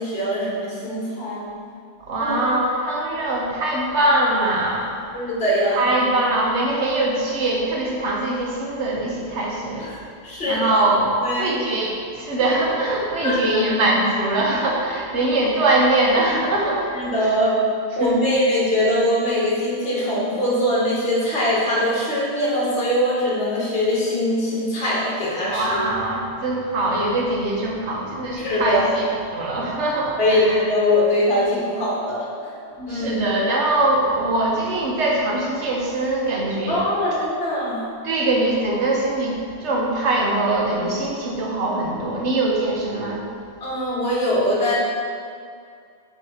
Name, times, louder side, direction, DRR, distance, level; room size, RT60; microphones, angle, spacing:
voice 1, 0.0-1.4 2.2-2.6 5.1-6.0 9.8-10.0 10.2-10.8 11.2-11.6 13.2-13.6 15.1-15.3 16.9-17.6 17.9-25.9 28.3-28.9 30.2-32.5 32.9-33.3 36.7-37.8 43.6-44.7, left 1 dB, 60° left, -7 dB, 1.6 m, -22 dB
voice 2, 2.0-4.9 5.8-9.9 10.5-17.0 18.0-18.3 25.5-29.0 29.3-30.6 32.8-36.8 38.0-43.2, right 2 dB, 90° right, -2 dB, 1.3 m, -22 dB
7.1 x 3.2 x 4.3 m, 2.3 s
omnidirectional pair, 1.1 m